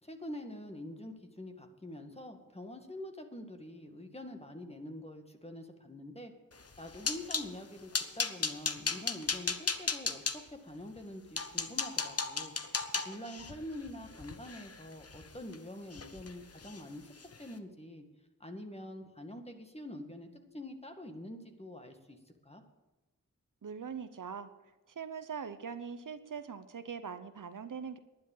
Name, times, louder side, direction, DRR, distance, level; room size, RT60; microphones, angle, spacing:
voice 1, 0.0-6.3 6.8-12.5 13.1-17.1 17.4-18.1 18.4-22.2 22.4-22.6, left 1 dB, 20° left, 5 dB, 1.9 m, -45 dB
sound 1, 6.6-7.5 7.9-10.4 11.0-11.1 11.4-15.6 15.9-16.3 16.6-16.8 17.2-17.4, left 4 dB, 45° left, 1.0 m, -35 dB
voice 2, 23.6-24.5 24.9-28.0, right 6 dB, 70° right, 11 dB, 0.9 m, -42 dB
11.5 x 9.9 x 7.3 m, 1.1 s
cardioid pair, 45°, 33 cm